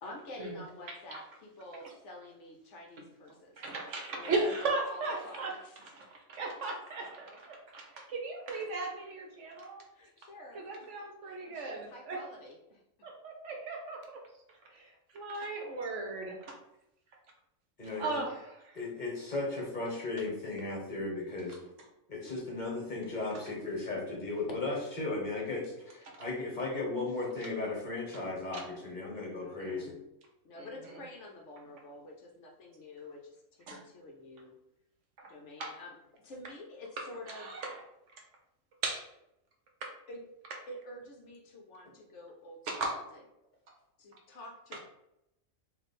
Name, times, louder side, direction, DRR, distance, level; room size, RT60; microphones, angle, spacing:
voice 1, 0.0-3.6 4.1-6.1 7.0-7.4 8.2-8.3 9.9-10.9 11.2-12.8 27.1-27.3 29.4-30.0 30.4-34.6 35.3-37.6 40.1-40.3 40.7-43.2 44.0-44.8, left 1 dB, 65° left, 1 dB, 0.9 m, -48 dB
voice 2, 0.9-1.2 3.6-5.5 6.1-9.8 10.5-12.2 13.0-14.2 14.6-16.6 18.0-18.8 28.5-28.7 29.6-29.8 30.6-30.9 33.7-33.8 35.6-35.8 37.3-37.8 38.8-39.1 39.8-39.9 42.7-43.0 44.7-44.8, right 3 dB, 65° right, 1 dB, 1.0 m, -37 dB
voice 3, 17.8-18.2 18.7-21.6 22.1-30.0, left 3 dB, 35° left, -3 dB, 1.1 m, -36 dB
3.3 x 2.7 x 4.1 m, 0.84 s
omnidirectional pair, 1.4 m